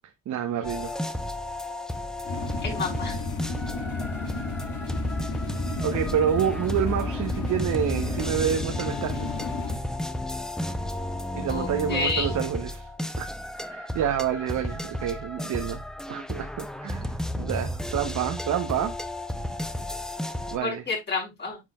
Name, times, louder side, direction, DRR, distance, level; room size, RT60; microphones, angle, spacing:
voice 1, 0.3-1.0 5.8-9.4 11.3-12.9 13.2-19.0 20.5-20.8, right 9 dB, 70° right, 1.0 m, -28 dB
sound 1, 0.6-20.6, left 1 dB, ahead, 0.6 m, -33 dB
sound 2, 2.3-9.8, left 3 dB, 75° left, 2.1 m, -33 dB
voice 2, 2.6-3.2 11.5-12.3 20.6-21.6, left 4 dB, 35° left, 4.8 m, -30 dB
9.2 x 4.9 x 2.4 m
cardioid pair, 90°, 30 cm